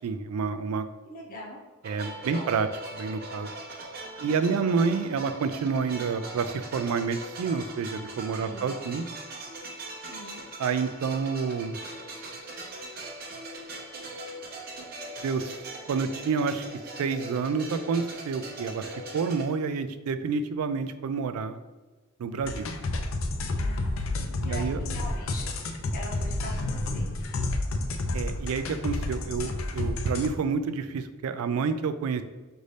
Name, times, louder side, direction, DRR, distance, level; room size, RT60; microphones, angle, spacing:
voice 1, 0.0-0.9 1.8-2.7 2.9-3.5 4.2-9.1 10.6-11.8 15.2-15.6 15.9-16.6 17.0-18.8 19.1-21.6 22.2-22.7 24.4-24.8 28.1-32.2, right 5 dB, 90° right, 11 dB, 0.3 m, -28 dB
voice 2, 1.1-1.6 2.3-2.5 4.2-4.7 8.4-8.9 10.0-10.4 23.5-27.1, left 1 dB, 40° left, -3 dB, 1.0 m, -43 dB
sound 1, 1.8-19.4, right 2 dB, 45° right, 0.7 m, -40 dB
sound 2, 22.4-30.3, left 2 dB, 70° left, 0.5 m, -30 dB
5.1 x 2.6 x 3.2 m, 1.2 s
head